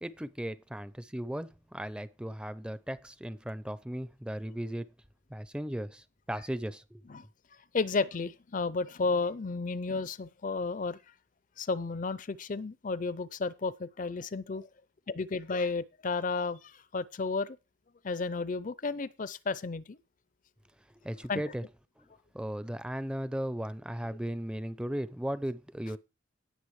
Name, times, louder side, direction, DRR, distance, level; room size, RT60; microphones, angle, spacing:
voice 1, 0.0-4.9 5.3-7.0 21.0-21.6 22.3-26.0, equal, 5° right, 0.5 m, -36 dB
voice 2, 7.7-11.0 11.6-14.7 15.1-17.6 18.0-20.0 21.3-21.4, left 4 dB, 40° left, 0.5 m, -32 dB
18.0 x 6.9 x 3.2 m
head